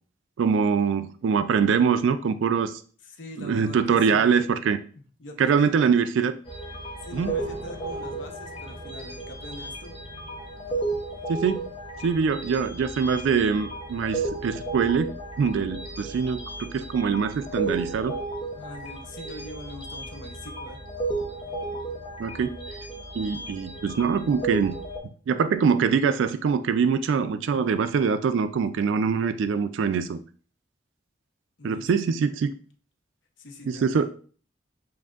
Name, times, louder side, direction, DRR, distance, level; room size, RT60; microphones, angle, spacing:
voice 1, 0.4-2.8 3.4-4.8 5.4-6.4 7.1-7.4 11.3-11.7 12.0-18.2 22.2-22.6 23.1-24.8 25.3-30.2 31.6-32.5 33.7-34.1, right 6 dB, 85° right, 11 dB, 0.3 m, -24 dB
voice 2, 3.0-4.3 5.2-5.9 7.0-9.9 18.6-20.8 31.6-31.9 33.4-34.1, left 2 dB, 75° left, 4 dB, 0.8 m, -42 dB
sound 1, 6.5-25.0, right 2 dB, 30° left, 0.8 m, -34 dB
Piano, 7.2-16.6 16.9-17.1, left 1 dB, 25° right, 1.5 m, -51 dB
7.3 x 2.6 x 2.4 m, 0.42 s
head